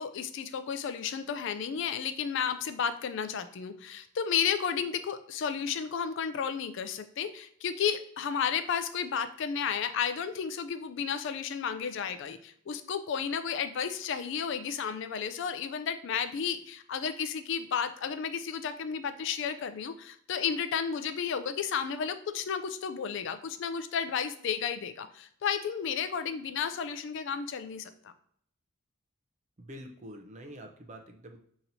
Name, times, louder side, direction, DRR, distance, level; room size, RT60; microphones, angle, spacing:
voice 1, 0.0-28.1, left 7 dB, 60° left, 10 dB, 0.3 m, -32 dB
voice 2, 29.6-31.4, equal, 35° right, 4 dB, 0.5 m, -46 dB
5.5 x 2.9 x 2.6 m, 0.64 s
head